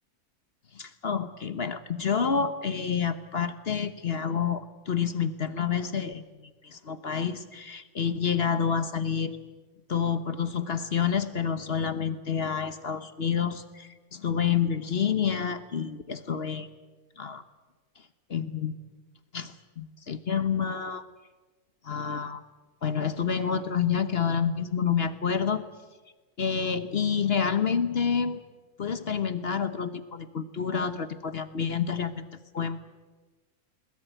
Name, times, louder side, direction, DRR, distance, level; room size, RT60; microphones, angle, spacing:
voice 1, 0.7-9.4 9.9-16.7 17.2-17.4 18.3-18.8 19.3-21.0 21.8-22.4 22.8-25.7 26.4-28.4 28.8-32.2 32.5-32.8, left 7 dB, 45° left, 12 dB, 1.1 m, -28 dB
21.5 x 20.0 x 9.1 m, 1.3 s
omnidirectional pair, 1.6 m